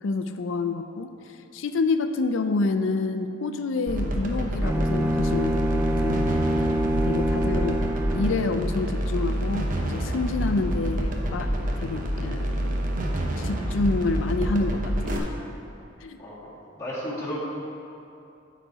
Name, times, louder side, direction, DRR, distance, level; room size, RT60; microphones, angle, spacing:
voice 1, 0.0-1.1 1.5-6.2 7.0-7.8 8.1-12.7 13.4-15.3 16.0-16.2, left 3 dB, 75° left, 8 dB, 0.4 m, -28 dB
sound 1, 3.9-15.2, equal, 45° right, 0.9 m, -28 dB
Bowed string instrument, 4.6-8.7, equal, 15° right, 0.3 m, -26 dB
voice 2, 16.8-17.4, equal, 15° left, -9 dB, 2.1 m, -32 dB
12.0 x 4.2 x 4.7 m, 2.7 s
head